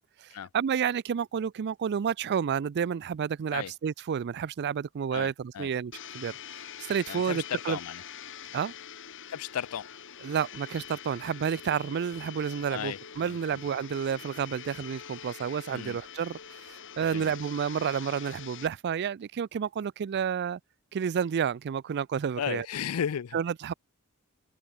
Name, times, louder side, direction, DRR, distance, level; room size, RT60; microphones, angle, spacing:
voice 1, 0.2-6.3 6.9-7.8 8.5-8.7 10.2-20.6 20.9-22.7 23.3-23.7, right 7 dB, 50° right, 0.4 m, -30 dB
voice 2, 5.1-5.7 7.1-8.0 9.3-9.9 12.7-13.6 15.7-16.0 17.0-17.3 22.4-23.4, left 8 dB, 85° left, 0.4 m, -35 dB
Domestic sounds home sounds, 5.9-18.7, left 8 dB, 60° left, 1.9 m, -45 dB
head